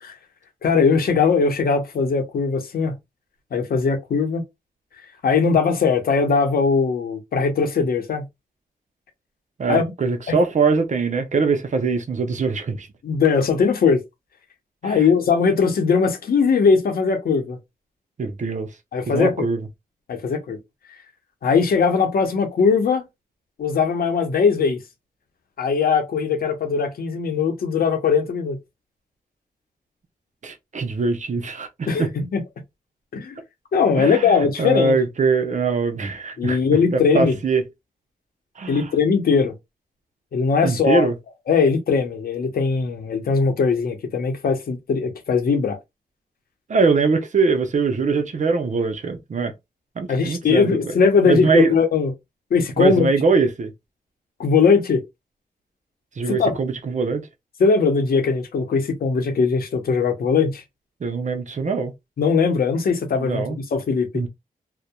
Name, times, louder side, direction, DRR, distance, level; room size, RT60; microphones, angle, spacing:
voice 1, 0.6-2.9 3.5-4.4 5.2-8.2 9.7-9.9 10.3-10.4 13.0-14.0 14.8-17.6 18.9-19.5 20.1-20.6 21.4-23.0 23.6-24.8 25.6-28.6 31.9-32.4 33.1-33.4 33.7-34.9 36.4-37.4 38.7-39.5 40.3-41.1 41.5-45.8 50.1-52.1 52.5-53.1 54.4-55.0 56.3-56.6 57.6-60.6 62.2-64.1, left 5 dB, 75° left, 0.7 m, -20 dB
voice 2, 9.6-12.9 14.8-15.0 18.2-18.7 19.1-19.6 30.4-32.1 34.0-36.6 36.9-37.6 38.6-38.9 40.6-41.1 46.7-49.5 50.0-50.9 51.2-51.7 52.8-53.7 56.2-57.2 61.0-61.9 63.2-63.6 64.1-64.3, right 4 dB, 50° right, 0.6 m, -22 dB
2.7 x 2.1 x 2.2 m
cardioid pair, 50°, 16 cm